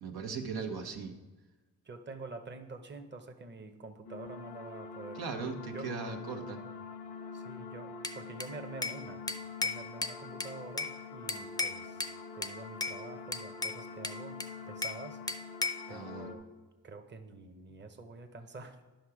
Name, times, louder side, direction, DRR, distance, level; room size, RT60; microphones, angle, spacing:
voice 1, 0.0-1.1 5.1-6.6 15.9-16.3, right 5 dB, 80° right, 3 dB, 1.2 m, -38 dB
voice 2, 1.8-5.2 5.7-5.9 7.3-9.2 9.6-12.1 12.3-14.4 14.7-15.2 15.9-16.5 16.8-18.8, right 3 dB, 30° right, 6 dB, 0.9 m, -47 dB
sound 1, 4.0-16.3, left 4 dB, 85° left, 0.9 m, -45 dB
Bell / Glass, 8.0-9.0 9.3-11.0 11.3-12.2 12.4-13.0 13.3-15.0 15.3-15.9, left 3 dB, 10° left, 0.6 m, -36 dB
10.5 x 5.9 x 4.9 m, 1.2 s
cardioid pair, 65°, 37 cm